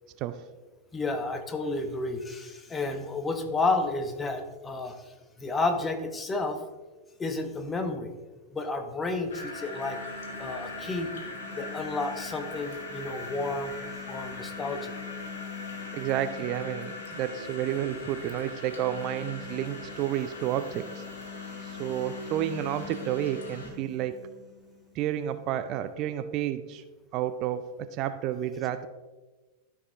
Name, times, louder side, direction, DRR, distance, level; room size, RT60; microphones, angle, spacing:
voice 1, 0.9-4.9 5.4-6.6 7.2-8.1 8.5-10.0 10.4-11.1 11.6-13.7 14.1-15.0, left 3 dB, 15° left, 6 dB, 1.0 m, -31 dB
sound 1, 9.3-23.7, left 2 dB, 65° left, 1.2 m, -42 dB
sound 2, 9.3-25.4, left 5 dB, ahead, 2.6 m, -44 dB
voice 2, 15.9-21.0 21.6-24.2 24.9-26.8 27.1-28.9, right 11 dB, 40° right, 11 dB, 0.4 m, -31 dB
12.5 x 4.8 x 3.4 m, 1.2 s
figure-of-eight pair, 90°, 0 cm